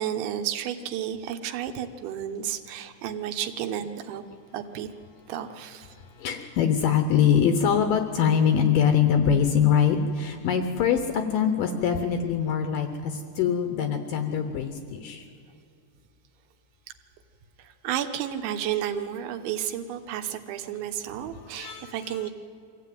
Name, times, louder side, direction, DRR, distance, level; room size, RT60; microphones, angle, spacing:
voice 1, 0.0-4.2 4.5-4.9 5.3-5.9 17.6-22.3, right 10 dB, 80° right, 7 dB, 3.4 m, -32 dB
voice 2, 6.2-15.2 21.6-21.9, left 8 dB, 80° left, 7 dB, 2.0 m, -23 dB
23.5 x 15.5 x 9.2 m, 2.4 s
omnidirectional pair, 5.3 m